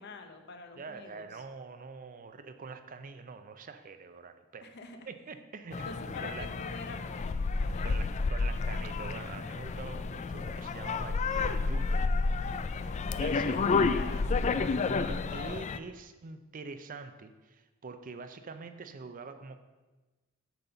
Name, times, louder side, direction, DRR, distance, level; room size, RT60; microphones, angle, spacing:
voice 1, 0.0-1.4 4.6-5.1 5.8-7.9 12.9-14.5, left 3 dB, 50° left, 7 dB, 0.8 m, -47 dB
voice 2, 0.8-4.7 5.1-6.5 7.8-12.0 13.2-13.9 14.9-19.6, right 4 dB, 40° right, 9 dB, 0.5 m, -45 dB
sound 1, 5.7-15.8, left 4 dB, 30° left, 0.3 m, -30 dB
8.9 x 4.1 x 6.8 m, 1.2 s
head